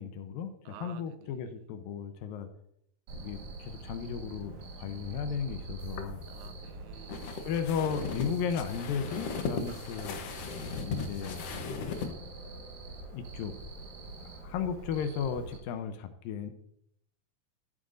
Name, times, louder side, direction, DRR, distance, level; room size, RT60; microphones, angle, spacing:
voice 1, 0.0-2.5 3.1-6.2 7.5-10.3 10.8-11.5 11.8-12.3 13.1-13.5 14.2-16.5, left 7 dB, 85° left, 2.5 m, -35 dB
voice 2, 0.7-1.7 6.3-7.3, right 10 dB, 80° right, 2.3 m, -52 dB
Cricket, 3.1-15.6, right 3 dB, 60° right, 2.8 m, -44 dB
Squeak, 3.8-7.4 7.8-9.4 9.7-10.2, right 2 dB, 40° right, 3.5 m, -62 dB
sound 1, 5.8-12.1, left 5 dB, 65° left, 1.5 m, -38 dB
15.0 x 8.9 x 2.6 m
omnidirectional pair, 4.0 m